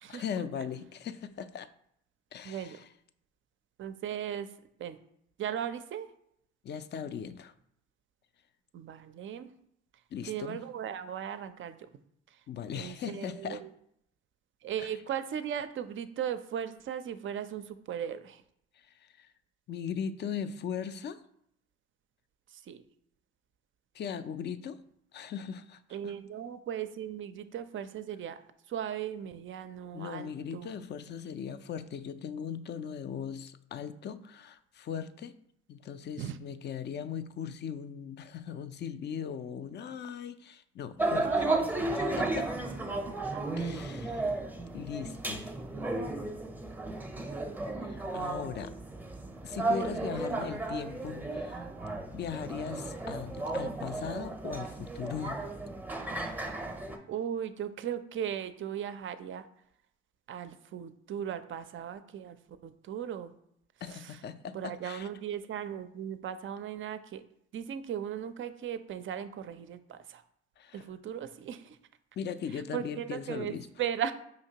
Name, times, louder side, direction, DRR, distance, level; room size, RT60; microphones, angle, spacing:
voice 1, 0.1-1.7 2.3-2.9 6.6-7.5 10.1-10.6 12.5-13.6 14.8-15.0 18.7-19.3 19.7-21.2 23.9-24.8 25.1-26.1 29.9-35.3 35.7-41.3 41.9-42.5 43.6-44.4 44.7-45.4 47.8-48.7 49.4-51.7 52.1-55.5 63.8-65.1 70.6-70.9 72.2-73.7, left 7 dB, 35° left, 12 dB, 0.4 m, -39 dB
voice 2, 2.4-2.8 3.8-4.5 4.8-5.0 5.4-6.1 8.7-9.5 10.3-11.8 12.7-13.7 14.6-18.4 22.7-22.8 25.9-28.4 28.7-30.7 36.2-36.4 41.2-42.3 43.1-43.4 57.1-59.5 60.3-62.4 62.6-63.3 63.9-64.1 64.5-67.2 67.5-70.2 70.7-71.8 72.7-73.5 73.8-74.1, right 9 dB, 40° right, 11 dB, 0.4 m, -37 dB
sound 1, 41.0-57.0, right 2 dB, 5° right, 0.7 m, -34 dB
5.0 x 2.8 x 2.8 m, 0.73 s
hypercardioid pair, 55°, 32 cm